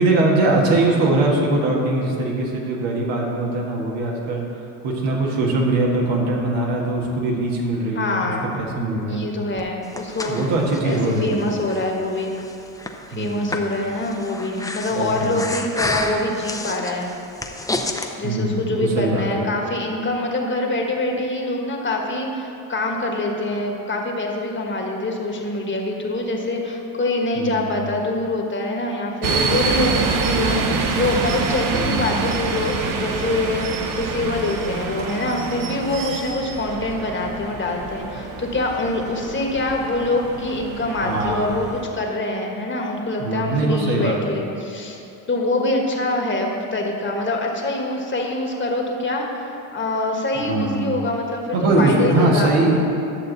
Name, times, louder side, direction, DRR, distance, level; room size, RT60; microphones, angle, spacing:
voice 1, 0.0-4.4 4.8-9.3 10.3-11.5 13.1-13.5 14.9-15.4 18.2-19.3 27.4-27.7 31.7-32.2 41.0-41.5 43.2-44.4 50.4-50.9 51.5-52.8, right 2 dB, 75° right, -2 dB, 1.8 m, -21 dB
voice 2, 7.9-8.5 9.1-10.5 10.8-12.3 13.1-17.1 18.2-45.0 45.3-52.8, left 2 dB, 25° left, 1 dB, 1.4 m, -25 dB
Breathing, 9.6-18.1, left 2 dB, 10° left, 0.7 m, -31 dB
sound 1, 29.2-41.8, right 4 dB, 50° right, 0.9 m, -26 dB
11.0 x 6.4 x 4.0 m, 2.7 s
supercardioid pair, 80°, 43 cm